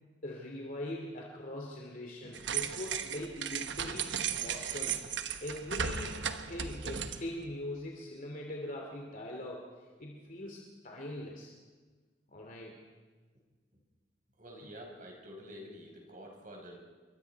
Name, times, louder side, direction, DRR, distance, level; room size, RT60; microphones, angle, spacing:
voice 1, 0.2-5.0 5.4-6.2 6.4-9.6 10.0-11.5 12.3-12.8, left 1 dB, 45° left, -1 dB, 2.7 m, -42 dB
sound 1, 2.3-7.4, right 7 dB, 80° right, 1.1 m, -36 dB
voice 2, 14.4-16.8, equal, 45° right, 1 dB, 5.0 m, -48 dB
27.0 x 23.0 x 4.7 m, 1.4 s
head